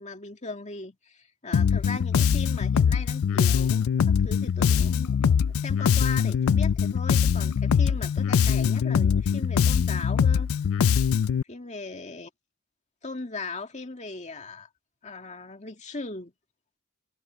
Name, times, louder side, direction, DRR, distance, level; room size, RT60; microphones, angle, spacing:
voice 1, 0.0-10.5 11.5-12.3 13.0-14.7 15.0-16.3, left 3 dB, 35° left, 2.1 m, -38 dB
Bass guitar, 1.5-11.4, left 7 dB, 75° left, 0.4 m, -22 dB
head